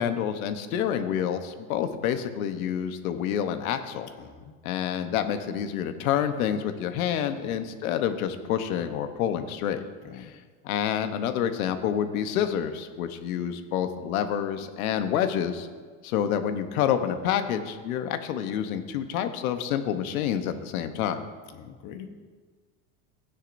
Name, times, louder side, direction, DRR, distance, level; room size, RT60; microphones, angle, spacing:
voice 1, 0.0-4.1 4.6-9.8 10.1-10.4 10.6-15.7 16.0-21.2, left 9 dB, 85° left, 8 dB, 1.1 m, -28 dB
voice 2, 4.2-4.6 7.4-7.6 10.0-10.4 21.5-22.1, left 8 dB, 50° left, 6 dB, 1.1 m, -44 dB
16.0 x 9.9 x 2.7 m, 1.5 s
supercardioid pair, 135°, 41 cm